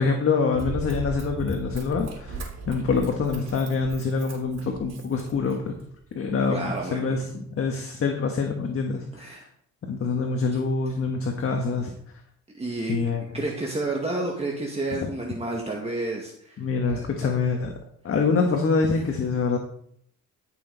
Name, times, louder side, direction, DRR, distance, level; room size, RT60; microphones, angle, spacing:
voice 1, 0.0-2.4 2.7-5.7 6.1-9.4 9.9-11.9 12.9-13.2 15.0-15.1 16.6-17.7 18.0-19.6, left 4 dB, 45° left, 3 dB, 1.5 m, -25 dB
Run, 0.5-5.8 6.4-6.5, right 3 dB, 60° right, 3.4 m, -36 dB
voice 2, 6.5-7.2 9.1-9.4 12.5-13.0 13.3-16.6 16.9-17.3, right 2 dB, 20° right, -1 dB, 1.8 m, -30 dB
15.0 x 6.3 x 4.0 m, 0.69 s
cardioid pair, 90°, 30 cm